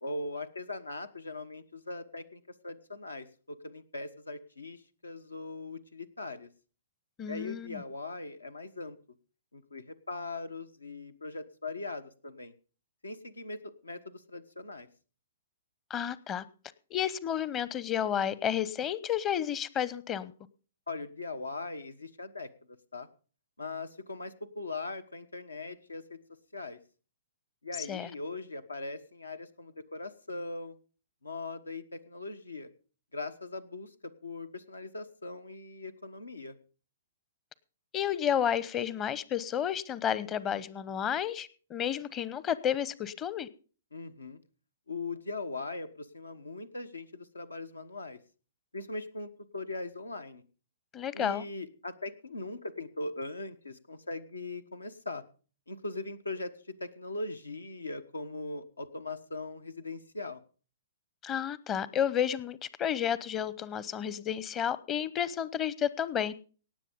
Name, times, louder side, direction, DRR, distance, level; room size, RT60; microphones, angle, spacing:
voice 1, 0.0-6.5 7.3-9.0 9.5-12.5 13.0-14.9 20.9-23.1 23.6-26.2 26.5-26.8 27.6-30.7 31.2-32.7 33.1-36.6 43.9-44.4 44.9-48.2 48.7-50.4 51.1-55.2 55.7-60.4, left 3 dB, 85° left, 12 dB, 1.2 m, -40 dB
voice 2, 7.2-7.8 15.9-16.4 16.9-20.3 27.9-28.1 37.9-43.5 50.9-51.4 61.2-66.3, left 9 dB, 25° left, 18 dB, 0.8 m, -31 dB
18.0 x 7.5 x 5.2 m, 0.39 s
figure-of-eight pair, 115°, 0 cm